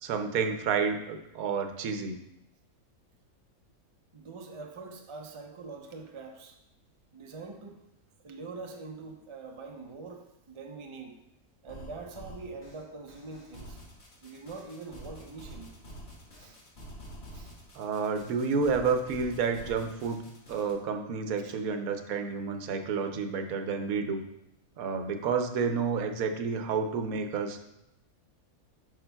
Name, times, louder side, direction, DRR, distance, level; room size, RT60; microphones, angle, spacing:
voice 1, 0.0-2.2 17.7-24.2 24.8-27.6, right 5 dB, 75° right, 6 dB, 1.1 m, -30 dB
voice 2, 4.1-6.6 7.1-7.8 8.2-11.2 11.6-13.8 14.2-15.7 16.4-16.6 17.3-17.5 21.4-21.6, right 3 dB, 50° right, 2 dB, 0.3 m, -44 dB
sound 1, 11.7-20.7, equal, 50° left, 1.7 m, -48 dB
8.4 x 6.5 x 2.2 m, 0.85 s
omnidirectional pair, 1.5 m